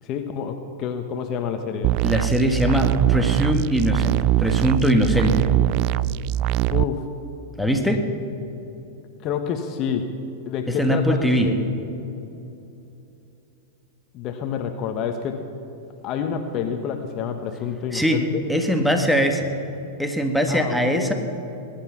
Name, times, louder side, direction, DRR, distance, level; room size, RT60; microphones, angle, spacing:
voice 1, 0.0-1.9 6.7-7.1 9.2-10.1 10.4-11.7 14.1-15.4 16.0-18.4 20.5-21.1, left 7 dB, 40° left, 6 dB, 1.2 m, -28 dB
sound 1, 1.8-6.8, right 15 dB, 50° right, 0.3 m, -22 dB
voice 2, 2.0-5.5 7.6-8.1 10.7-11.5 17.9-19.5 20.0-21.1, equal, ahead, 4 dB, 1.6 m, -21 dB
20.5 x 10.5 x 5.9 m, 2.9 s
hypercardioid pair, 100°, 0 cm